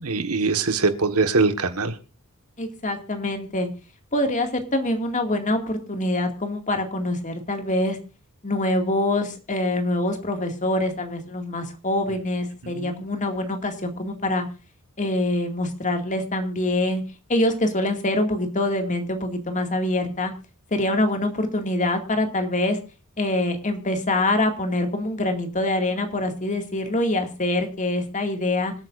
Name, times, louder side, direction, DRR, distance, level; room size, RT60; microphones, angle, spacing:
voice 1, 0.0-2.0 12.6-13.0, right 4 dB, 80° right, 8 dB, 1.6 m, -23 dB
voice 2, 2.6-3.7 4.1-8.0 8.4-14.5 15.0-17.0 17.3-20.3 20.7-22.8 23.2-28.7, left 1 dB, 35° left, 4 dB, 2.2 m, -25 dB
26.0 x 8.9 x 2.6 m, 0.32 s
head